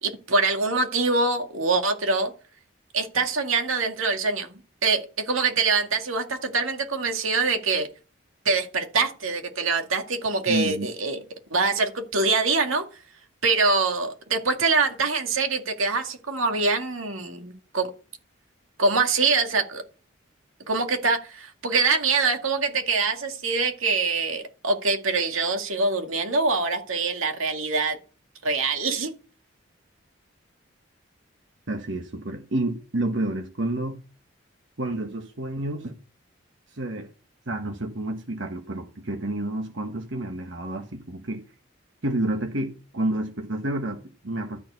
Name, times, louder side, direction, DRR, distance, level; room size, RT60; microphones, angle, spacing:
voice 1, 0.0-2.3 2.9-7.9 8.5-11.2 11.5-12.8 13.4-17.9 18.8-19.8 20.7-28.0 28.4-29.2, right 4 dB, 85° right, 2.0 m, -24 dB
voice 2, 10.5-10.9 31.7-34.0 34.8-36.0 36.7-37.1 37.5-41.4 42.0-44.6, right 1 dB, 65° right, 1.3 m, -29 dB
13.0 x 4.5 x 8.1 m
head